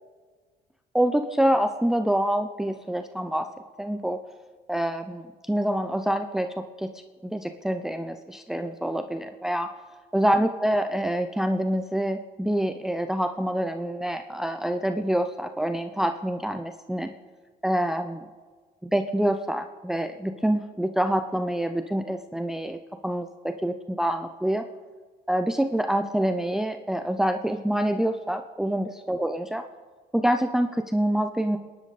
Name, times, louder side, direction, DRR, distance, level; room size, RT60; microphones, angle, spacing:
voice 1, 0.9-3.5 3.8-4.2 4.7-6.9 7.2-9.7 10.1-17.1 17.6-18.3 18.8-24.6 25.3-29.6 30.1-31.6, right 1 dB, 5° right, 7 dB, 0.6 m, -26 dB
29.0 x 11.0 x 4.1 m, 1.5 s
cardioid pair, 110°, 17 cm